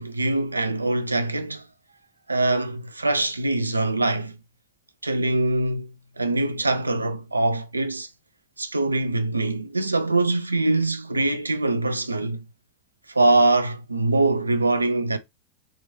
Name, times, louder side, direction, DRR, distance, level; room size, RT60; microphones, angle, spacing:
voice 1, 0.0-1.7 2.3-4.4 5.0-8.1 8.6-12.4 13.1-15.2, right 2 dB, 80° right, 0.3 m, -23 dB
2.9 x 2.4 x 2.3 m
figure-of-eight pair, 90°, 0 cm